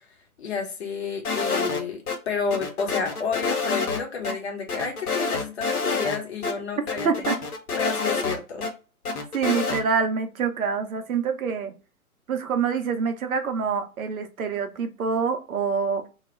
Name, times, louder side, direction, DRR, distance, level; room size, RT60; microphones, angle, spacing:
voice 1, 0.4-7.1 7.8-8.7, left 5 dB, 45° left, 0.8 m, -30 dB
sound 1, 1.2-2.2 2.5-4.0 4.2-4.3 4.7-6.2 6.4-6.5 6.9-8.7 9.0-9.8, left 4 dB, 85° left, 0.7 m, -27 dB
voice 2, 7.0-7.4 9.3-11.7 12.3-16.1, right 6 dB, 70° right, 0.7 m, -26 dB
2.3 x 2.0 x 3.0 m
figure-of-eight pair, 125°, 44 cm